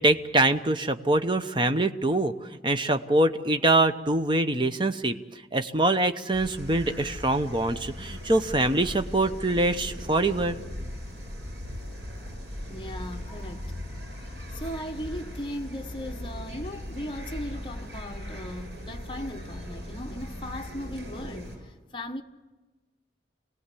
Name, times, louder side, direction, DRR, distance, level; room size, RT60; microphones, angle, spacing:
voice 1, 0.0-2.3 2.6-5.1 5.5-10.6, right 2 dB, 25° right, 0.8 m, -24 dB
sound 1, 6.3-21.6, left 1 dB, 70° right, 7.7 m, -39 dB
voice 2, 12.7-13.7 14.5-22.2, equal, 25° left, 1.1 m, -37 dB
26.5 x 18.5 x 8.4 m
head